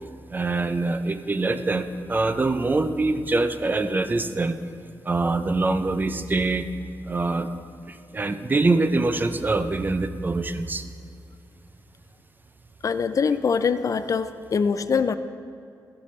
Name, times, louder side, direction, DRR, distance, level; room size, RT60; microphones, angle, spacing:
voice 1, 0.3-4.6 5.0-6.7 7.0-7.5 7.9-10.8, right 3 dB, 25° right, 10 dB, 0.4 m, -24 dB
voice 2, 12.8-15.1, left 5 dB, 45° left, 12 dB, 0.3 m, -23 dB
12.5 x 11.5 x 3.1 m, 2.5 s
wide cardioid pair, 145°, 8 cm